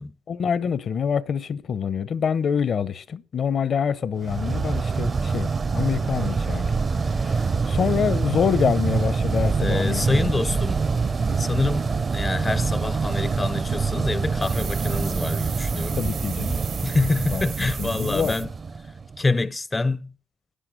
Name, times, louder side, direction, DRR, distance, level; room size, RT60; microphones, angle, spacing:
voice 1, 0.3-6.7 7.7-10.3 16.0-16.6 17.3-17.4 17.8-18.3, left 7 dB, 55° left, 0.7 m, -25 dB
sound 1, 4.2-19.2, right 4 dB, 40° right, 0.6 m, -25 dB
voice 2, 9.6-10.8 11.4-16.0 16.8-18.5 19.2-20.1, left 3 dB, 20° left, 0.4 m, -26 dB
sound 2, 14.4-18.4, right 7 dB, 60° right, 0.9 m, -37 dB
10.0 x 9.9 x 6.5 m
cardioid pair, 90°, 0 cm